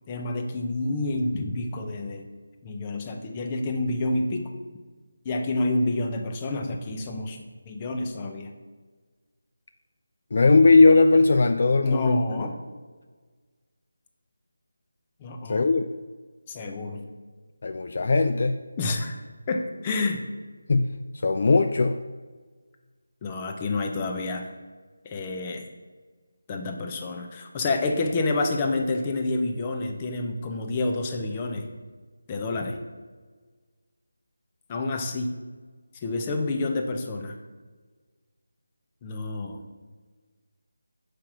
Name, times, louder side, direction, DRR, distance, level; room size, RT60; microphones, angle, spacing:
voice 1, 0.1-2.3 2.6-4.5 5.2-8.6 11.8-12.6 15.2-15.7 16.5-17.0 18.8-19.2 19.5-20.2 23.2-24.5 25.0-25.7 26.5-31.7 32.3-32.8 34.7-35.3 35.9-37.4 39.0-39.6, left 2 dB, 20° left, 4 dB, 0.7 m, -28 dB
voice 2, 10.3-12.2 15.5-15.9 17.6-18.6 20.7-21.0 21.2-22.0, left 3 dB, 50° left, 7 dB, 0.3 m, -19 dB
5.6 x 5.0 x 6.0 m, 1.4 s
figure-of-eight pair, 165°, 0 cm